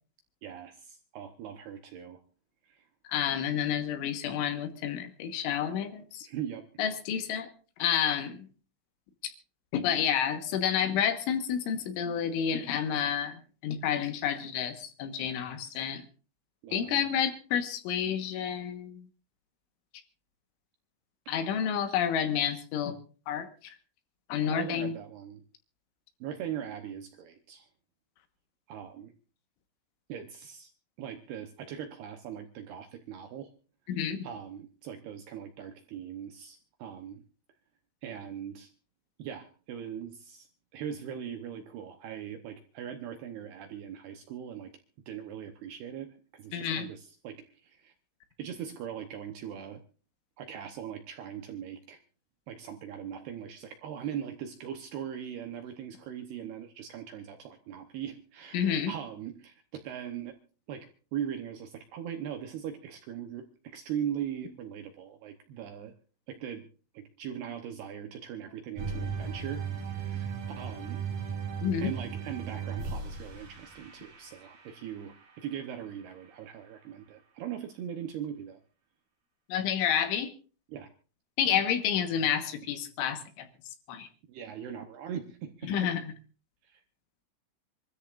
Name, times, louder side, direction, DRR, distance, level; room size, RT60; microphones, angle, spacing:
voice 1, 0.4-2.2 2.6-2.9 6.2-6.7 15.2-15.8 16.6-17.1 24.5-25.4 26.2-27.7 28.7-29.1 30.1-30.7 31.0-33.5 34.2-37.2 38.0-38.7 39.2-44.7 45.1-47.9 48.4-49.8 50.4-52.0 52.5-60.4 60.7-65.9 66.3-66.7 66.9-71.0 71.8-78.6 80.7-80.9 84.3-85.9 86.6-86.8, right 9 dB, 75° right, 5 dB, 2.5 m, -40 dB
voice 2, 3.1-6.3 6.8-7.5 7.8-8.5 9.2-9.3 9.7-16.0 16.7-19.1 21.3-23.0 23.3-23.5 24.3-24.9 33.9-34.3 46.5-46.9 58.5-58.9 71.6-71.9 79.5-80.3 81.4-83.5 83.9-84.1 85.7-86.1, left 8 dB, 75° left, 7 dB, 3.6 m, -29 dB
sound 1, 68.8-75.1, right 6 dB, 50° right, 5.7 m, -37 dB
27.0 x 13.5 x 2.5 m, 0.38 s
omnidirectional pair, 5.7 m